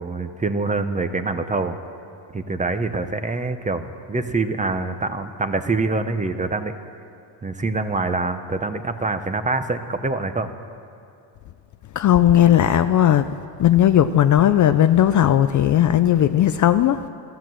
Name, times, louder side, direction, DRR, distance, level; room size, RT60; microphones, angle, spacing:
voice 1, 0.0-1.8 2.3-6.7 7.4-10.5, right 3 dB, 15° right, 9 dB, 0.6 m, -25 dB
voice 2, 12.0-13.3 13.6-17.0, left 11 dB, 45° left, 11 dB, 0.4 m, -16 dB
14.0 x 13.5 x 7.5 m, 2.5 s
cardioid pair, 145°, 46 cm